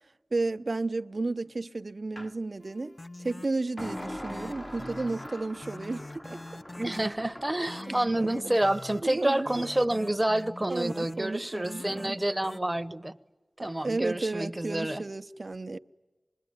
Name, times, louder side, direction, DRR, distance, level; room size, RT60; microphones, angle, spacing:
voice 1, 0.3-2.9 3.2-6.4 7.9-8.3 9.0-9.6 10.7-12.2 13.6-15.8, right 3 dB, 60° right, 0.8 m, -33 dB
sound 1, 2.2-2.4 3.8-7.5, equal, 20° left, 0.9 m, -42 dB
sound 2, 2.6-12.6, left 2 dB, 40° left, 0.8 m, -45 dB
voice 2, 6.7-13.2 13.6-15.0, right 1 dB, 20° right, 1.0 m, -28 dB
25.5 x 22.0 x 9.7 m
cardioid pair, 40°, 0 cm